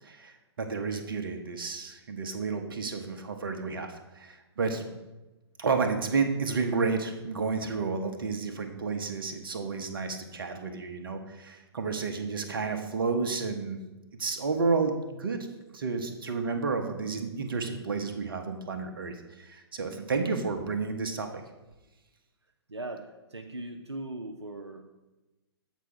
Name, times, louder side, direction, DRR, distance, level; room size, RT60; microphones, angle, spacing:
voice 1, 0.0-5.0 5.6-13.8 14.2-21.4, right 4 dB, 55° right, 6 dB, 0.9 m, -31 dB
voice 2, 22.7-24.8, right 2 dB, 85° right, 4 dB, 0.6 m, -40 dB
8.0 x 4.8 x 4.5 m, 1.1 s
figure-of-eight pair, 120°, 14 cm